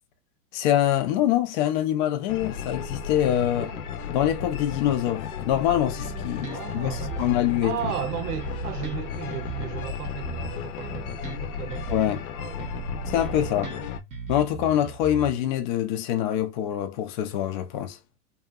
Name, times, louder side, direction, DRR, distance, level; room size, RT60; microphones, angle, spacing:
voice 1, 0.5-3.7 4.1-7.9 11.9-12.2 13.0-13.7 14.3-18.0, left 11 dB, 35° left, 0.4 m, -25 dB
sound 1, 2.3-14.0, left 7 dB, 70° left, 0.6 m, -34 dB
voice 2, 3.5-3.8 6.5-7.3 7.6-12.0 12.4-12.8 13.1-13.8, right 9 dB, 80° right, 0.8 m, -36 dB
Bass guitar, 6.0-7.5 7.8-12.3 12.6-15.6, right 6 dB, 15° right, 0.7 m, -38 dB
2.8 x 2.4 x 2.3 m
supercardioid pair, 150°, 45 cm